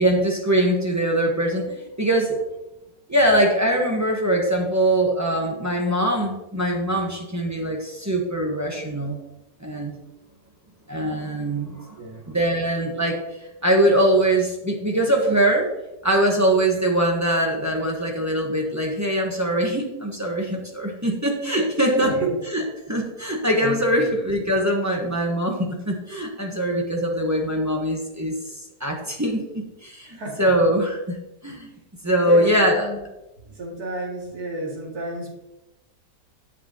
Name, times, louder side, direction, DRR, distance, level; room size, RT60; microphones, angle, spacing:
voice 1, 0.0-2.4 3.1-9.2 9.6-10.0 10.9-12.0 12.3-13.2 13.6-15.7 16.0-31.2 31.4-31.7 32.0-32.9, right 1 dB, 15° right, 0 dB, 0.8 m, -22 dB
voice 2, 23.6-24.0 30.0-30.5 32.2-33.0 33.4-35.4, right 1 dB, 60° right, -3 dB, 2.6 m, -32 dB
8.8 x 7.2 x 2.8 m, 0.94 s
omnidirectional pair, 1.8 m